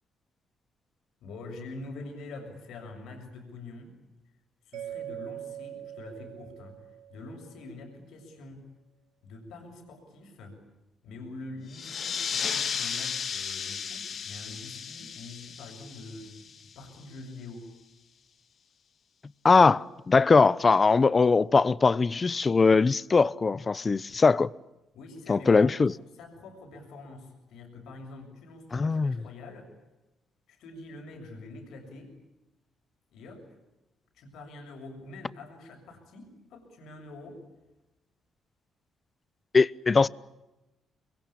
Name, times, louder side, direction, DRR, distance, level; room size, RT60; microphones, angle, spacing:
voice 1, 1.2-4.0 4.7-6.8 7.1-8.7 9.2-10.6 11.0-17.7 24.9-25.9 26.2-29.7 30.5-32.2 33.1-33.5 34.1-37.4, left 2 dB, 80° left, 7.2 m, -45 dB
Mallet percussion, 4.7-7.7, right 11 dB, 90° right, 1.8 m, -42 dB
sound 1, 11.7-16.9, left 7 dB, 55° left, 2.1 m, -34 dB
voice 2, 19.4-24.5 25.3-25.9 28.7-29.2 39.5-40.1, left 4 dB, 30° left, 0.8 m, -21 dB
27.5 x 23.0 x 8.6 m
cardioid pair, 90°, 0 cm